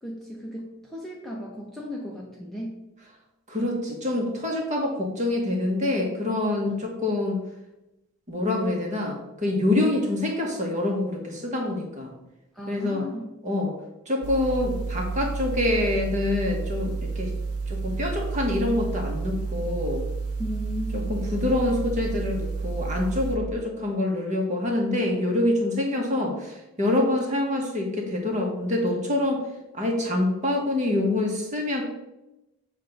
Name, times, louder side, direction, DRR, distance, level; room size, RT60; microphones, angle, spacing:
voice 1, 0.0-2.8 6.7-6.9 12.5-13.3 20.4-21.2, equal, ahead, -3 dB, 0.7 m, -35 dB
voice 2, 3.5-7.4 8.3-12.1 12.7-13.0 13.4-13.7 14.1-17.3 17.7-20.1 20.9-29.5 29.7-31.8, left 2 dB, 35° right, 0 dB, 1.2 m, -26 dB
sound 1, 14.2-23.4, right 4 dB, 85° right, 0.6 m, -30 dB
7.3 x 2.5 x 5.8 m, 0.94 s
head